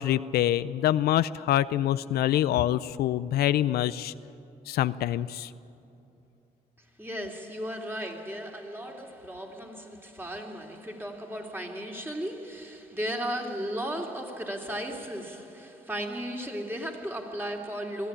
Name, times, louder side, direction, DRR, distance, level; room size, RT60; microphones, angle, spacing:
voice 1, 0.0-4.1 4.7-5.5, left 12 dB, 80° left, 0.5 m, -25 dB
voice 2, 7.0-18.1, equal, 15° right, 3.4 m, -35 dB
21.5 x 14.0 x 10.0 m
cardioid pair, 70°, 16 cm